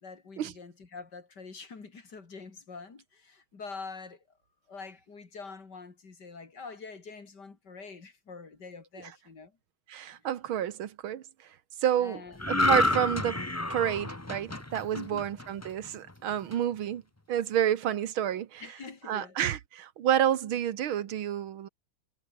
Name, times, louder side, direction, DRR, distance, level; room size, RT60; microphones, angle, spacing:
voice 1, 0.0-4.2 4.7-9.5 12.0-12.5 12.9-13.0 14.9-15.3 18.6-19.4, left 4 dB, 55° left, 3.5 m, -45 dB
voice 2, 9.9-11.2 11.8-13.4 13.7-17.0 17.3-18.7 19.1-21.7, right 10 dB, 80° right, 2.0 m, -29 dB
sound 1, 12.4-15.9 16.3-16.5, left 2 dB, 10° left, 0.8 m, -29 dB
omnidirectional pair, 2.2 m